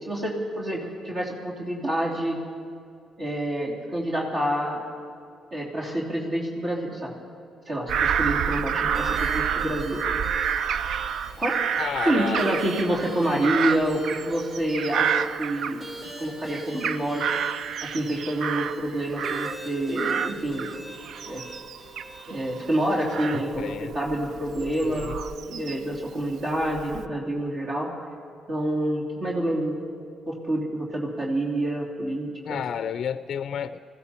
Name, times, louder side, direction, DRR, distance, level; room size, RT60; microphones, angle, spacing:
voice 1, 0.1-2.4 3.2-4.8 5.5-7.1 7.7-10.0 11.4-11.6 12.0-15.8 16.2-17.2 17.8-20.7 21.3-21.4 22.3-25.1 25.5-27.9 28.5-29.8 30.3-32.6, right 1 dB, 55° right, -4 dB, 3.3 m, -27 dB
Bird vocalization bird call bird song / Crow, 7.9-16.2 16.6-19.7 20.0-26.0 26.5-27.1, right 7 dB, 70° right, 0.4 m, -29 dB
sound 1, 8.9-23.4, right 1 dB, 30° right, 4.5 m, -43 dB
voice 2, 11.8-12.5 23.3-23.9 24.8-25.2 32.5-33.8, left 8 dB, 65° left, 13 dB, 0.4 m, -31 dB
21.5 x 15.0 x 4.4 m, 2.4 s
cardioid pair, 90°, 0 cm